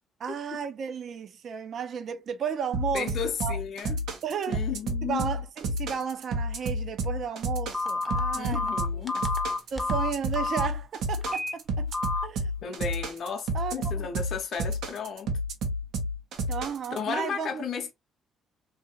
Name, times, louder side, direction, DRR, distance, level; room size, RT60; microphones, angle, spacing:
voice 1, 0.2-3.1 3.4-3.6 4.2-4.7 5.0-9.0 9.7-11.9 12.2-12.5 13.5-14.1 16.5-17.6, right 7 dB, 55° right, 0.5 m, -33 dB
sound 1, 2.7-17.0, right 1 dB, 80° right, 1.0 m, -30 dB
voice 2, 2.9-4.0 4.5-5.3 8.3-9.2 12.6-15.3 16.9-17.9, left 6 dB, 55° left, 0.6 m, -34 dB
Telephone, 7.7-10.7 11.2-11.5 11.9-12.2, left 3 dB, ahead, 0.6 m, -29 dB
2.8 x 2.7 x 2.7 m
cardioid pair, 115°, 0 cm